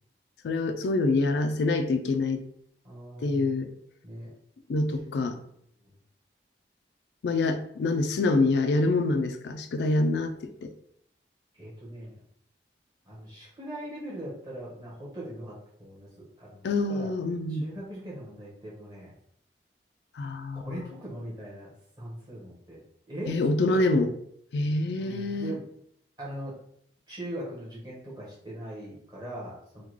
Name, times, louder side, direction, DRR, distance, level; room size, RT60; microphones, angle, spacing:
voice 1, 0.4-2.4 3.2-3.7 4.7-5.4 7.2-10.7 16.6-17.7 20.2-20.8 23.3-24.1 24.5-25.5, left 2 dB, 80° left, 8 dB, 0.3 m, -26 dB
voice 2, 2.8-3.5 4.0-4.3 5.8-5.9 11.5-12.2 13.1-17.1 17.5-19.1 20.5-21.7 22.0-23.8 25.0-25.6 26.2-26.6 27.1-29.8, right 1 dB, 20° right, -6 dB, 1.1 m, -40 dB
3.6 x 2.2 x 3.1 m, 0.67 s
head